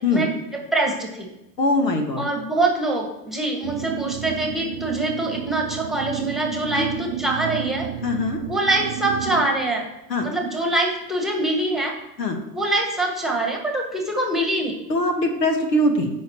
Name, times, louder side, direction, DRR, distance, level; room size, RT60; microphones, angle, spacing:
voice 1, 0.1-1.3 2.2-7.9 8.5-9.9 10.2-11.9 12.5-14.8, right 2 dB, ahead, 1 dB, 1.7 m, -24 dB
voice 2, 1.6-2.3 6.7-6.9 8.0-8.4 10.1-10.3 12.2-12.4 14.9-16.1, left 1 dB, 85° left, 5 dB, 1.6 m, -21 dB
sound 1, 3.6-9.5, right 11 dB, 45° right, 0.6 m, -32 dB
15.0 x 5.7 x 3.0 m, 0.92 s
hypercardioid pair, 100°, 49 cm